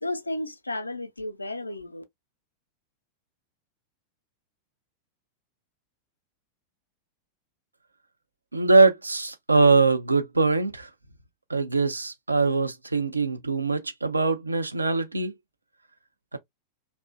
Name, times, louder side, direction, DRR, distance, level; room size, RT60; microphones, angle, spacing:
voice 1, 0.0-2.0, left 1 dB, 80° left, 0.3 m, -33 dB
voice 2, 8.5-10.9 11.5-15.3 16.3-16.4, right 3 dB, 80° right, 0.4 m, -22 dB
2.5 x 2.1 x 2.4 m
figure-of-eight pair, 90°, 0 cm